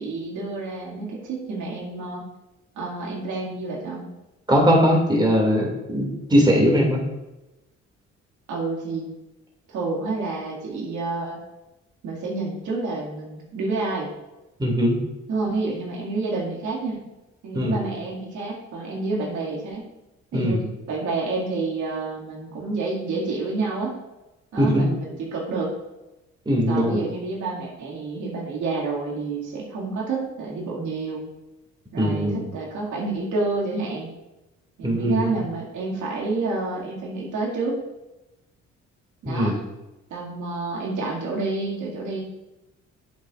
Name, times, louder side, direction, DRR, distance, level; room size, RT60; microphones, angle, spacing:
voice 1, 0.0-2.3 2.8-4.0 8.5-9.1 9.7-11.4 12.0-14.1 15.3-17.0 17.4-19.8 20.3-20.6 20.9-24.0 24.5-25.8 26.7-31.2 31.9-34.1 34.8-37.8 39.2-39.6 40.1-42.2, right 3 dB, 80° right, -3 dB, 2.2 m, -29 dB
voice 2, 4.5-7.0 14.6-15.0 17.5-17.8 20.3-20.6 24.6-24.8 26.5-27.0 32.0-32.4 34.8-35.3 39.2-39.6, equal, 15° right, -1 dB, 2.3 m, -20 dB
9.3 x 8.0 x 2.5 m, 1.0 s
cardioid pair, 90°, 30 cm